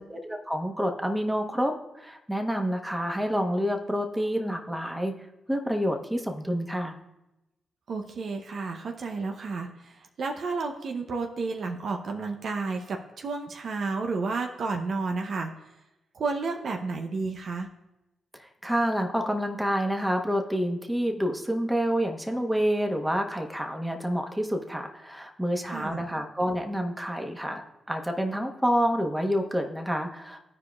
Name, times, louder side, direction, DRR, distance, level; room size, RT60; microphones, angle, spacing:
voice 1, 0.0-5.1 5.5-7.0 18.4-27.6 27.9-30.4, equal, 5° right, 3 dB, 1.2 m, -28 dB
voice 2, 7.9-15.5 16.1-17.7 25.7-26.1, right 4 dB, 65° right, 4 dB, 0.6 m, -31 dB
14.0 x 4.9 x 2.4 m, 0.96 s
supercardioid pair, 55°, 0 cm